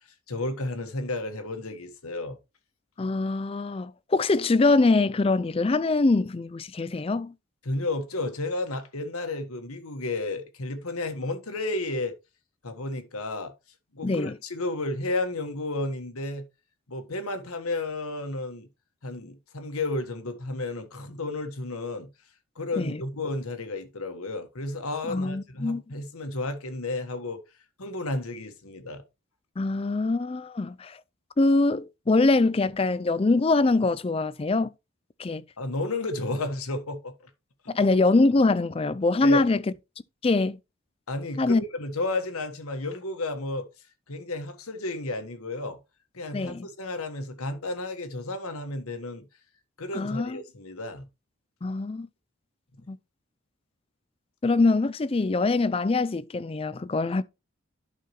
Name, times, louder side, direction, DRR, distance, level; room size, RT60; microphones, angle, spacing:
voice 1, 0.3-2.4 7.6-12.1 12.6-13.5 13.9-16.4 16.9-18.7 19.0-22.1 22.5-27.4 27.8-29.0 35.6-37.3 39.2-39.4 41.1-43.7 44.1-45.8 46.1-49.3 49.8-51.0, left 2 dB, 85° left, 1.5 m, -32 dB
voice 2, 3.0-7.3 14.0-14.4 22.8-23.0 25.1-25.8 29.6-31.0 31.4-34.7 35.2-35.4 37.7-39.6 40.2-40.6 41.4-41.6 46.3-46.7 49.9-50.4 51.6-52.1 52.9-53.0 54.4-57.2, left 3 dB, 25° left, 0.4 m, -23 dB
11.5 x 5.7 x 3.1 m
head